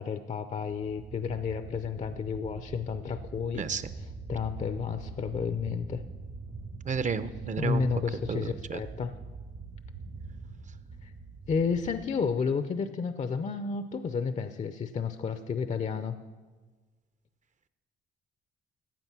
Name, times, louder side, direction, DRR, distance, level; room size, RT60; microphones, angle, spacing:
voice 1, 0.0-3.6 4.3-6.0 7.6-9.1 11.0-11.1 11.5-16.2, left 5 dB, 35° left, 10 dB, 0.6 m, -31 dB
sound 1, 0.7-12.1, right 4 dB, 70° right, 1.7 m, -43 dB
voice 2, 3.5-3.9 6.8-7.9 8.3-8.8, right 5 dB, 40° right, 13 dB, 0.7 m, -32 dB
15.0 x 7.6 x 6.0 m, 1.4 s
cardioid pair, 90°, 20 cm